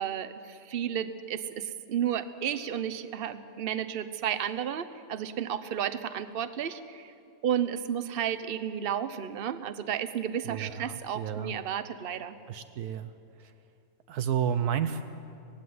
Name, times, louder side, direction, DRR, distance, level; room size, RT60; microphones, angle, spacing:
voice 1, 0.0-7.1 7.4-12.4, right 9 dB, 45° right, 12 dB, 0.8 m, -32 dB
voice 2, 10.5-11.6 12.5-13.1 14.1-15.0, right 8 dB, 75° right, 10 dB, 1.2 m, -31 dB
18.0 x 16.0 x 9.4 m, 2.5 s
omnidirectional pair, 1.7 m